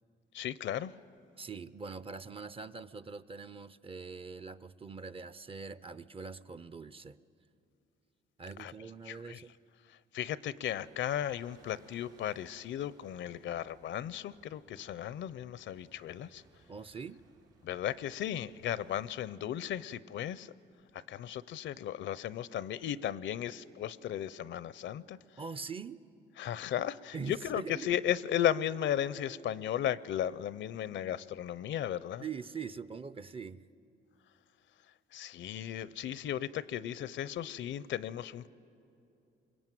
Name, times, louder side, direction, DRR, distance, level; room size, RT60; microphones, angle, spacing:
voice 1, 0.3-0.9 8.6-8.7 9.1-9.4 9.9-16.4 17.6-20.5 20.9-25.2 26.4-32.2 35.1-38.5, left 10 dB, 70° left, 0.6 m, -35 dB
voice 2, 1.4-7.2 8.4-9.5 16.7-17.2 25.4-26.0 27.1-28.0 32.2-33.6, right 5 dB, 30° right, 0.6 m, -43 dB
sound 1, 10.8-19.2, right 4 dB, 80° right, 3.8 m, -65 dB
25.0 x 22.0 x 9.2 m
cardioid pair, 90°, 20 cm